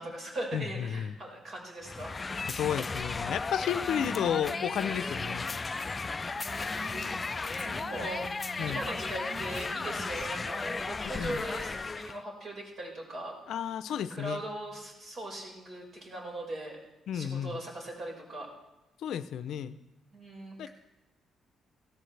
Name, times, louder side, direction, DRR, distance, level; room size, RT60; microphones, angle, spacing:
voice 1, 0.0-2.1 6.4-8.3 8.6-13.3 14.1-16.8 17.1-18.5 20.1-20.7, right 1 dB, 45° right, 0 dB, 5.0 m, -40 dB
voice 2, 0.5-1.1 2.5-5.5 8.6-8.8 11.0-11.4 13.5-14.4 17.1-17.6 19.0-19.8 20.6-20.7, left 9 dB, 75° left, 12 dB, 0.6 m, -32 dB
sound 1, 1.8-12.2, left 4 dB, 30° left, 0.3 m, -35 dB
Female speech woman speaking, 3.8-7.3 7.6-10.3, right 5 dB, 90° right, 1.3 m, -47 dB
16.5 x 14.5 x 3.4 m, 0.96 s
cardioid pair, 90°, 0 cm